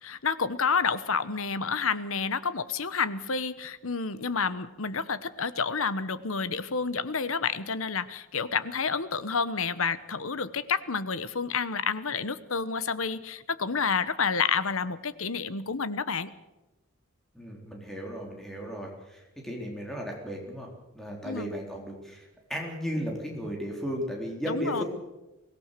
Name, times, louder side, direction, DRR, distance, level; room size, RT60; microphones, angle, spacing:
voice 1, 0.0-16.3 21.2-21.5 24.5-24.8, left 5 dB, 75° left, 14 dB, 1.1 m, -29 dB
voice 2, 17.3-20.7 20.9-24.8, equal, ahead, -1 dB, 3.9 m, -35 dB
23.5 x 18.0 x 6.8 m, 1.0 s
head